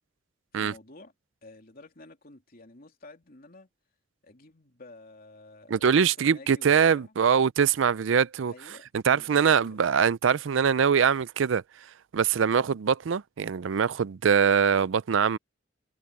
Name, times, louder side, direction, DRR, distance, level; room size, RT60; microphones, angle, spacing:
voice 1, 0.5-1.1 1.4-3.7 4.2-7.1 8.4-9.8 12.4-12.7 15.2-15.3, left 2 dB, 50° left, 3.1 m, -51 dB
voice 2, 5.7-8.5 9.0-11.6 12.1-15.4, right 7 dB, 70° right, 0.4 m, -23 dB
head